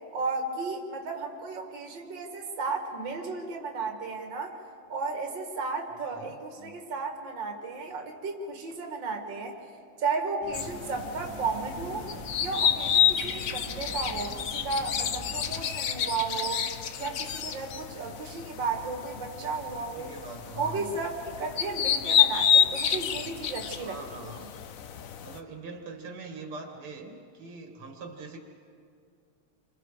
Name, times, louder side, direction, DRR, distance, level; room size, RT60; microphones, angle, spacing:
voice 1, 0.1-4.6 4.9-9.6 10.0-12.0 12.4-16.6 17.0-20.1 20.5-24.4, right 4 dB, 60° right, 3 dB, 2.6 m, -34 dB
voice 2, 5.9-6.8 20.0-20.9 23.8-24.5 25.2-28.4, right 3 dB, 85° right, 3 dB, 3.0 m, -43 dB
sound 1, 10.4-15.5, right 1 dB, 10° right, 3.6 m, -44 dB
sound 2, 10.5-25.4, left 9 dB, 60° left, 0.8 m, -29 dB
28.5 x 27.0 x 5.0 m, 2.4 s
omnidirectional pair, 2.4 m